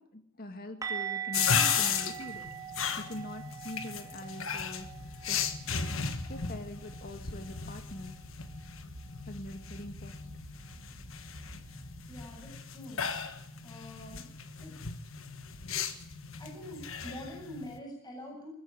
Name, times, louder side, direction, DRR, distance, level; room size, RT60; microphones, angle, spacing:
voice 1, 0.0-2.5 3.0-4.9 5.2-6.0 6.3-8.2 9.3-10.3, left 1 dB, 45° left, 6 dB, 2.6 m, -44 dB
sound 1, 0.8-6.6 6.8-7.1 7.4-7.6 10.8-10.9, right 9 dB, 20° right, 2.3 m, -41 dB
sound 2, 1.3-17.8, left 7 dB, 75° left, 1.4 m, -35 dB
sound 3, 4.8-12.6, equal, 60° right, 2.6 m, -51 dB
voice 2, 12.1-13.0 13.6-14.3 14.6-14.7 16.4-18.5, left 1 dB, 20° left, -1 dB, 8.0 m, -45 dB
20.5 x 14.0 x 9.7 m, 0.74 s
head